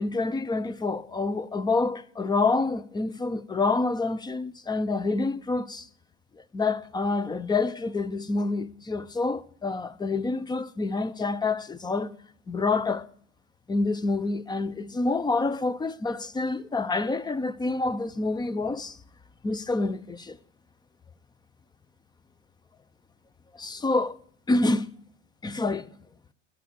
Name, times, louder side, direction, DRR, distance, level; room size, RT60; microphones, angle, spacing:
voice 1, 0.0-5.9 6.3-12.1 12.5-13.1 13.7-19.0 19.4-20.4 23.5-24.2 24.5-24.9 25.4-25.9, left 3 dB, 10° left, 0.6 m, -27 dB
12.0 x 11.0 x 8.8 m
hypercardioid pair, 95°, 37 cm